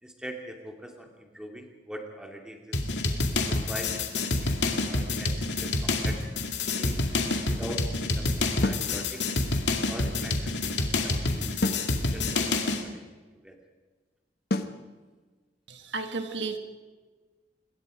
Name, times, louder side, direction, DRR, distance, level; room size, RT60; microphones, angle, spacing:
voice 1, 0.0-2.8 3.4-6.3 6.8-7.0 7.5-9.2 9.8-13.6, equal, 5° right, 2 dB, 2.6 m, -43 dB
sound 1, 2.7-12.8, left 2 dB, 75° left, 2.3 m, -28 dB
sound 2, 8.6-8.9 11.6-11.9 14.5-14.8, left 2 dB, 60° left, 1.2 m, -28 dB
voice 2, 15.7-16.6, right 3 dB, 80° right, 7 dB, 1.8 m, -33 dB
26.0 x 21.5 x 5.1 m, 1.3 s
head